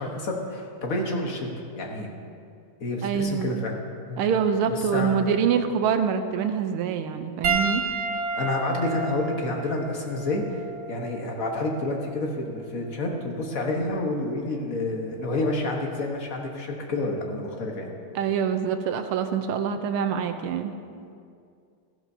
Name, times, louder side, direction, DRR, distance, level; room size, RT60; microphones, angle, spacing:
voice 1, 0.0-2.1 2.8-3.7 4.1-4.2 4.7-5.2 8.3-10.4 10.9-17.9, left 2 dB, 45° left, 1 dB, 1.4 m, -29 dB
voice 2, 3.0-3.7 4.2-7.8 18.1-20.7, right 7 dB, 85° right, 8 dB, 1.5 m, -25 dB
Piano, 7.4-12.1 13.0-13.2 15.2-15.3, right 4 dB, 60° right, 0.7 m, -31 dB
14.5 x 12.0 x 2.7 m, 2.4 s
omnidirectional pair, 2.4 m